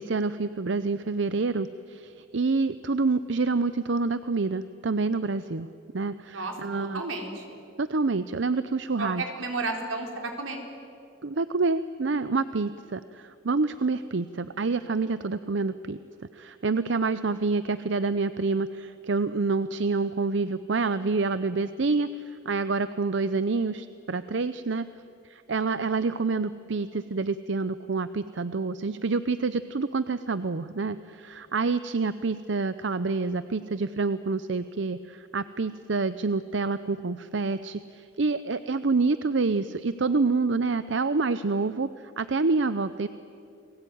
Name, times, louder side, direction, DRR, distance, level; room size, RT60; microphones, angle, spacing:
voice 1, 0.0-5.7 5.9-7.0 7.8-9.2 11.2-16.0 16.3-24.9 25.2-43.1, right 3 dB, 65° right, 13 dB, 0.6 m, -27 dB
voice 2, 6.8-7.4 9.0-10.6, right 3 dB, 85° right, 3 dB, 4.2 m, -32 dB
29.5 x 20.5 x 9.4 m, 2.5 s
head